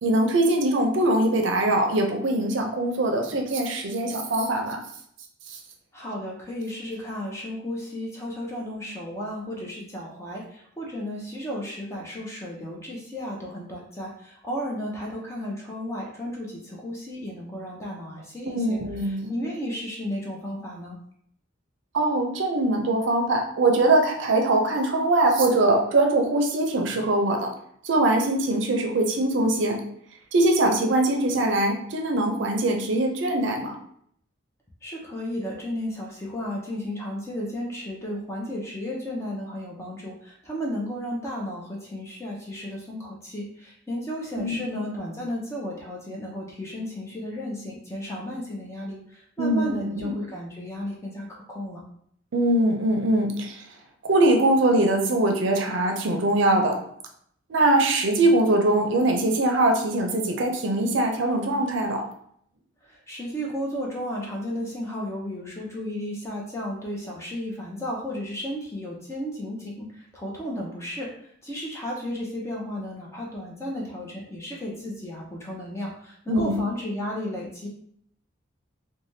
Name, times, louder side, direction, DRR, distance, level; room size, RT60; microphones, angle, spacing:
voice 1, 0.0-4.8 5.5-5.6 18.5-19.3 21.9-27.5 27.8-29.8 30.3-33.8 44.3-44.7 49.4-50.1 52.3-53.6 54.0-56.8 57.5-62.0 64.6-64.7 76.3-76.6, right 1 dB, 75° right, 3 dB, 0.5 m, -22 dB
voice 2, 5.9-18.8 19.1-21.0 34.8-51.8 62.8-77.7, equal, 15° left, -3 dB, 0.6 m, -34 dB
3.2 x 2.2 x 2.7 m, 0.66 s
head